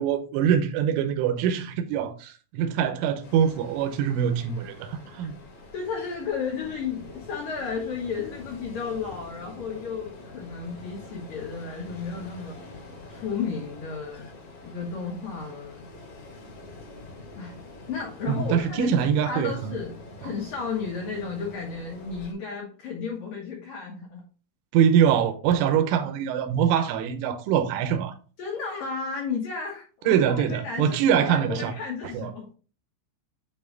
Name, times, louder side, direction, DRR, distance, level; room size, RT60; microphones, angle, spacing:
voice 1, 0.0-5.4 18.3-19.8 24.7-28.1 30.1-31.7 32.1-32.3, right 8 dB, 80° right, 3.2 m, -23 dB
Ocean, 3.2-22.3, left 2 dB, 45° left, 2.7 m, -45 dB
voice 2, 5.7-12.6 13.1-14.3 14.6-15.8 17.4-17.6 17.9-24.2 28.4-32.5, left 5 dB, 80° left, 1.9 m, -33 dB
8.6 x 3.1 x 3.8 m
omnidirectional pair, 5.8 m